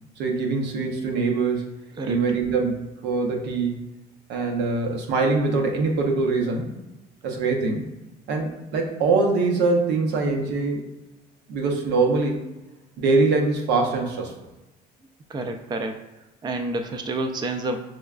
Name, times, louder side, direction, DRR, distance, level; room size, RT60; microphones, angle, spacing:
voice 1, 0.2-1.7 2.1-3.9 4.3-6.7 7.2-7.9 8.3-10.8 11.5-12.4 13.0-14.3, right 3 dB, 90° right, 2 dB, 0.8 m, -23 dB
voice 2, 15.3-16.1 16.4-17.8, right 2 dB, 25° right, 6 dB, 0.4 m, -29 dB
6.0 x 2.2 x 2.4 m, 1.0 s
cardioid pair, 110°, 17 cm